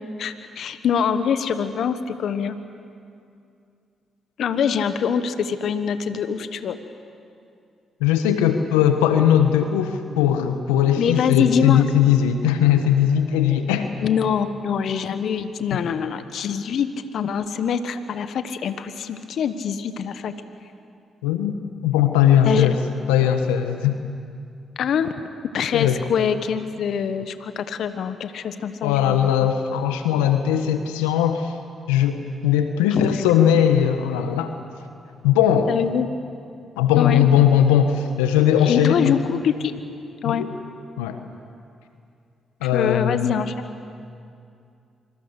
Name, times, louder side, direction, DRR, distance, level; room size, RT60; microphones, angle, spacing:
voice 1, 0.2-2.6 4.4-6.8 11.0-11.8 14.0-20.3 22.4-22.7 24.8-25.1 25.5-29.3 32.9-33.2 35.7-36.1 37.0-37.3 38.6-39.7 40.2-40.4 42.6-43.5, left 7 dB, 70° left, 10 dB, 1.3 m, -24 dB
voice 2, 8.0-13.9 15.7-15.8 21.2-21.5 21.8-22.8 23.1-24.0 25.7-26.0 28.8-31.5 31.9-34.5 35.2-35.7 36.8-39.1 40.2-40.5 41.0-41.2 42.6-43.3, left 9 dB, 90° left, 7 dB, 1.3 m, -19 dB
26.5 x 25.5 x 8.2 m, 2.4 s
hypercardioid pair, 45°, 0 cm